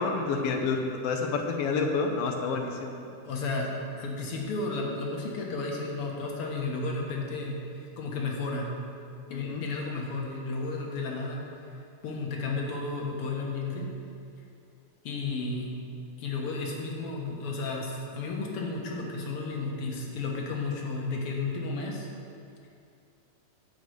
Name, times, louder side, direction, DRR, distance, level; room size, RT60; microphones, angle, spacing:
voice 1, 0.0-3.1 9.3-9.7, left 4 dB, 85° left, 2 dB, 1.3 m, -29 dB
voice 2, 3.2-3.7 4.0-8.7 9.3-11.4 12.0-13.9 15.0-15.7 16.2-22.1, left 3 dB, 55° left, -1 dB, 1.9 m, -33 dB
12.0 x 5.3 x 7.8 m, 2.5 s
omnidirectional pair, 3.8 m